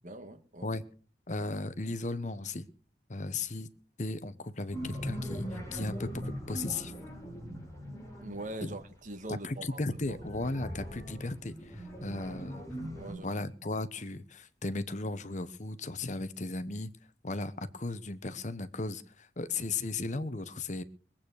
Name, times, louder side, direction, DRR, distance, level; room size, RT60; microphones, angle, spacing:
voice 1, 0.0-0.7 8.1-9.8 10.1-10.2 12.3-12.5 12.9-13.4, right 1 dB, 45° right, 1.9 m, -43 dB
voice 2, 1.3-2.6 3.1-3.7 4.0-6.9 8.6-8.7 9.3-12.6 13.2-17.0 17.2-20.8, left 2 dB, 45° left, 1.0 m, -36 dB
sound 1, 4.7-9.1 9.7-13.1, equal, 20° left, 6.9 m, -40 dB
21.5 x 8.8 x 6.5 m
head